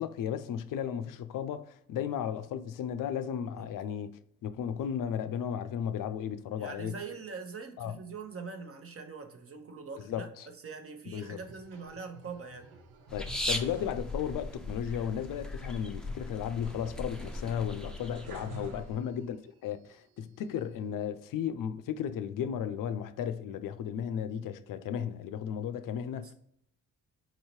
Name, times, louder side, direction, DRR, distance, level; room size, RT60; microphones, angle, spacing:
voice 1, 0.0-4.1 4.4-6.9 7.8-8.0 10.1-10.5 11.1-11.4 13.1-19.4 19.6-26.3, left 8 dB, 65° left, 0.5 m, -35 dB
voice 2, 6.6-12.7 18.5-18.9 26.2-26.3, right 5 dB, 40° right, 0.9 m, -43 dB
sound 1, 11.4-14.4 14.7-14.8 16.6-19.4 19.9-20.7, right 5 dB, 80° right, 0.7 m, -50 dB
sound 2, 13.1-19.0, left 1 dB, ahead, 0.5 m, -38 dB
4.0 x 2.8 x 3.0 m
supercardioid pair, 60°, 35 cm